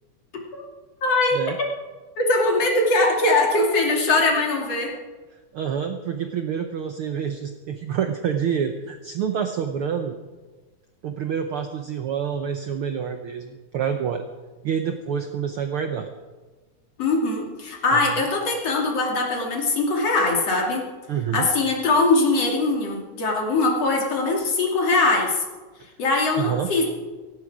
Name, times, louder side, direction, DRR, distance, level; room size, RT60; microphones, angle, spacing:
voice 1, 1.0-1.7 2.2-4.9 17.0-20.9 21.3-25.4 26.0-26.8, left 2 dB, 55° left, 0 dB, 3.6 m, -21 dB
voice 2, 5.5-10.2 11.0-14.2 14.6-16.1 17.9-18.2 21.1-21.5 26.4-26.7, right 7 dB, 70° right, 6 dB, 1.3 m, -27 dB
17.0 x 16.5 x 4.9 m, 1.3 s
omnidirectional pair, 3.4 m